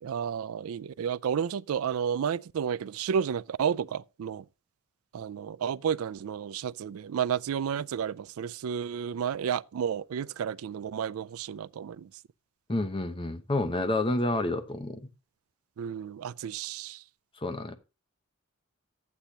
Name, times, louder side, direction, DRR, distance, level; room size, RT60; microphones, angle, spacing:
voice 1, 0.0-4.4 5.1-12.1 15.8-17.0, right 7 dB, 85° right, 0.4 m, -31 dB
voice 2, 12.7-15.1 17.4-17.8, left 2 dB, 25° left, 0.9 m, -29 dB
11.5 x 8.4 x 2.8 m
head